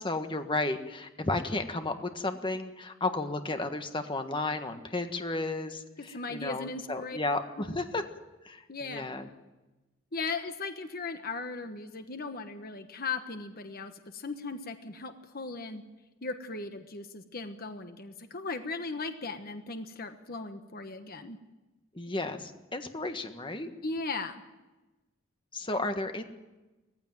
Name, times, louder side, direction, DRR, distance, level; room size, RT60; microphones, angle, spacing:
voice 1, 0.0-8.0 8.4-9.3 21.9-23.7 25.5-26.2, left 2 dB, 25° left, 7 dB, 1.5 m, -33 dB
voice 2, 6.1-7.2 7.6-7.7 8.7-9.1 10.1-15.8 16.2-21.4 23.8-24.4, left 3 dB, 45° left, 8 dB, 1.3 m, -37 dB
18.5 x 15.5 x 9.2 m, 1.1 s
head